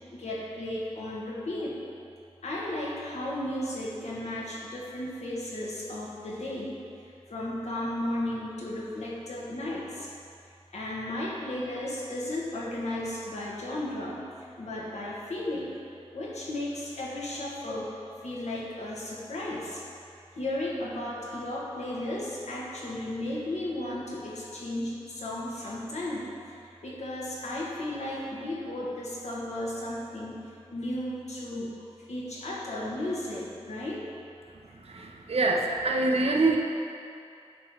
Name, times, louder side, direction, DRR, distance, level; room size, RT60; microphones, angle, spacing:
voice 1, 0.1-1.8 2.4-6.8 7.3-10.1 10.7-15.7 16.1-17.9 18.2-19.8 20.3-26.3 26.8-30.4 30.7-31.7 32.1-34.0, left 1 dB, 90° left, -6 dB, 1.5 m, -34 dB
voice 2, 35.3-36.6, right 3 dB, 65° right, 1 dB, 0.8 m, -24 dB
8.9 x 3.2 x 6.3 m, 2.6 s
wide cardioid pair, 105°, 11 cm